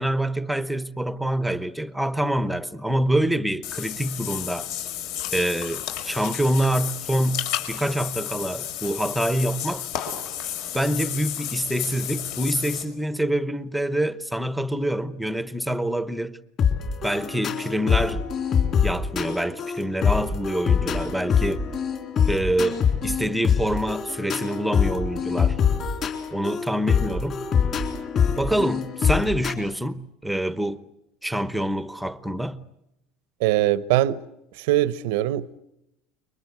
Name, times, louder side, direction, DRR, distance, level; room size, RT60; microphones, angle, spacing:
voice 1, 0.0-4.7 5.3-9.9 10.7-16.4 17.0-18.2 18.8-21.6 22.3-25.6 26.3-27.4 28.4-30.8 31.2-32.6, right 1 dB, ahead, 1.0 m, -26 dB
Water / Bathtub (filling or washing), 3.6-12.8, left 11 dB, 60° left, 5.5 m, -32 dB
sound 1, 16.6-29.5, left 7 dB, 30° left, 3.9 m, -24 dB
voice 2, 33.4-34.2 34.5-35.6, right 14 dB, 80° right, 0.9 m, -22 dB
29.5 x 23.5 x 8.0 m
cardioid pair, 165°, 0 cm